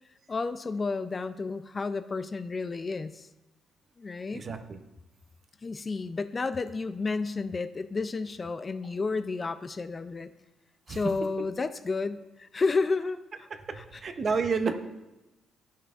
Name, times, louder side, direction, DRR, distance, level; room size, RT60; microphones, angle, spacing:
voice 1, 0.3-3.3 4.0-4.4 5.6-10.3 10.9-13.2 13.8-14.0, left 4 dB, 30° left, 12 dB, 0.3 m, -31 dB
voice 2, 4.3-4.8 10.9-11.0 13.7-14.7, right 5 dB, 45° right, 8 dB, 0.6 m, -30 dB
10.5 x 5.7 x 2.4 m, 1.0 s
cardioid pair, 90°, 0 cm